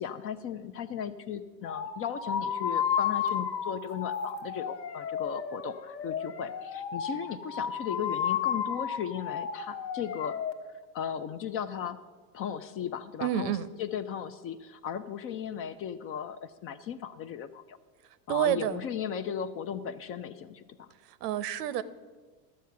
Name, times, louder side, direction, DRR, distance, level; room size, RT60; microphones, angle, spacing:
voice 1, 0.0-10.4 10.9-12.0 12.3-13.5 13.8-17.8 18.3-20.9, left 8 dB, 30° left, 11 dB, 0.4 m, -36 dB
sound 1, 1.6-10.5, left 8 dB, 85° left, 1.3 m, -33 dB
voice 2, 13.2-13.7 18.3-18.8 21.0-21.8, right 11 dB, 75° right, 16 dB, 0.8 m, -29 dB
12.0 x 7.5 x 5.8 m, 1.4 s
hypercardioid pair, 100°, 48 cm